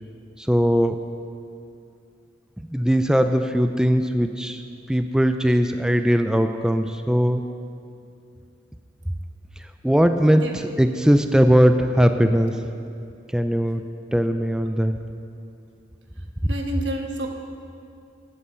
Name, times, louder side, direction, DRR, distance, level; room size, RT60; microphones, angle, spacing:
voice 1, 0.4-1.0 2.7-4.6 4.9-7.4 9.6-12.6 13.3-13.8 14.1-15.0, equal, 5° right, 7 dB, 0.4 m, -20 dB
voice 2, 16.5-17.3, right 1 dB, 85° right, 3 dB, 1.3 m, -29 dB
11.0 x 8.7 x 6.4 m, 2.5 s
head